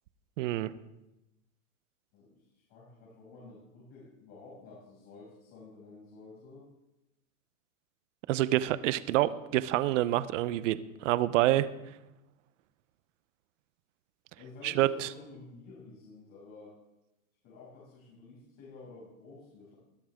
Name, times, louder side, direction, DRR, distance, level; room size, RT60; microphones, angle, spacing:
voice 1, 0.4-0.7 8.3-10.8 11.0-11.7 14.6-15.1, right 15 dB, 60° right, 15 dB, 0.9 m, -27 dB
voice 2, 2.1-6.7 14.4-16.8 17.4-19.8, left 3 dB, 40° left, -6 dB, 6.5 m, -51 dB
20.5 x 11.0 x 3.7 m, 0.95 s
hypercardioid pair, 130°, 42 cm